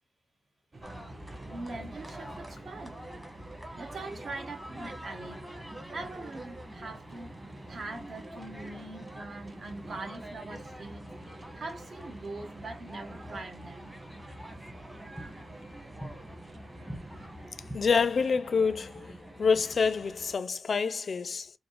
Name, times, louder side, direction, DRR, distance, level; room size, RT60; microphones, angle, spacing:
sound 1, 0.7-18.3, right 1 dB, 35° right, 0.7 m, -50 dB
sound 2, 0.8-20.3, right 1 dB, 10° right, 1.1 m, -45 dB
voice 1, 1.5-3.0 3.8-5.5 5.9-7.3 7.7-11.1 11.5-14.0, right 2 dB, 60° right, 1.2 m, -42 dB
voice 2, 17.7-21.5, left 5 dB, 55° left, 0.4 m, -27 dB
5.0 x 2.0 x 3.1 m
wide cardioid pair, 145°, 0 cm